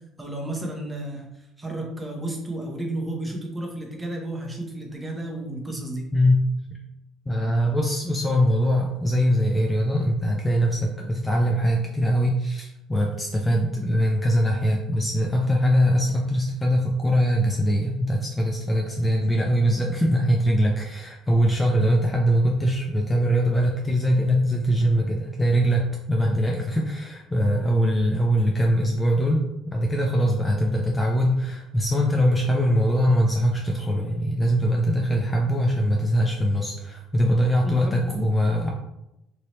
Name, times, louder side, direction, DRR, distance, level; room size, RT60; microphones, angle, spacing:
voice 1, 0.2-6.1 37.6-38.7, right 1 dB, 15° right, 0 dB, 0.8 m, -33 dB
voice 2, 6.1-6.5 7.3-38.7, equal, 15° left, 0 dB, 0.4 m, -22 dB
3.0 x 2.7 x 3.0 m, 0.88 s
cardioid pair, 110°, 0 cm